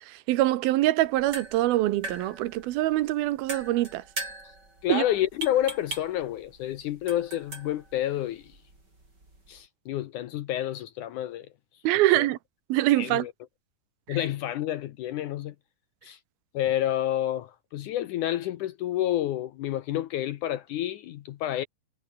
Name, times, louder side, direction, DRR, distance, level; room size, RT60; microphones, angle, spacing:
voice 1, 0.1-4.0 4.9-5.0 11.8-12.4 12.7-13.3 14.1-14.2, right 16 dB, 80° right, 2.8 m, -24 dB
sound 1, 1.0-9.7, right 2 dB, 25° right, 7.7 m, -41 dB
voice 2, 4.8-8.6 9.5-11.5 12.2-12.3 13.0-13.3 14.1-15.6 16.0-16.2 16.5-21.7, left 12 dB, 70° left, 2.0 m, -29 dB
omnidirectional pair, 4.4 m